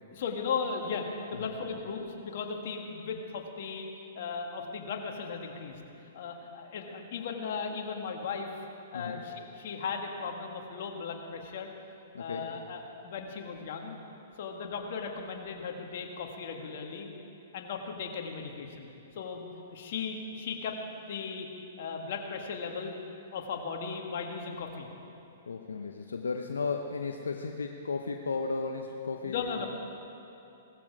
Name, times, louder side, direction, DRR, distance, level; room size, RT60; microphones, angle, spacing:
voice 1, 0.1-3.9 4.2-5.8 6.1-8.5 8.9-11.7 12.2-14.0 14.4-17.1 17.5-18.9 19.2-20.8 21.1-21.5 21.8-22.9 23.3-24.9 29.2-29.7, left 5 dB, 60° left, 2 dB, 2.0 m, -37 dB
voice 2, 12.1-12.5 25.5-29.7, left 4 dB, 85° left, 3 dB, 0.8 m, -35 dB
18.0 x 14.5 x 4.9 m, 2.9 s
hypercardioid pair, 120°, 0 cm